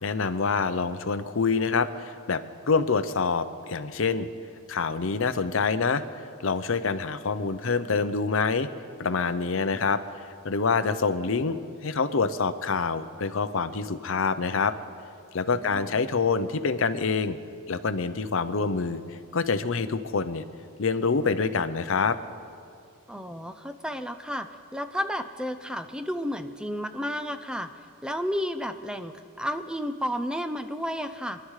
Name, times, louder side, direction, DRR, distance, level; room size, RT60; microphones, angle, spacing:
voice 1, 0.0-4.3 4.7-6.0 6.4-8.7 9.0-10.0 10.4-14.7 15.3-17.4 17.7-20.4 20.8-22.2, left 4 dB, 60° left, 11 dB, 0.6 m, -26 dB
voice 2, 15.5-15.9 23.1-27.7 28.0-31.4, equal, 5° right, 9 dB, 0.5 m, -32 dB
26.0 x 11.5 x 3.2 m, 2.4 s
head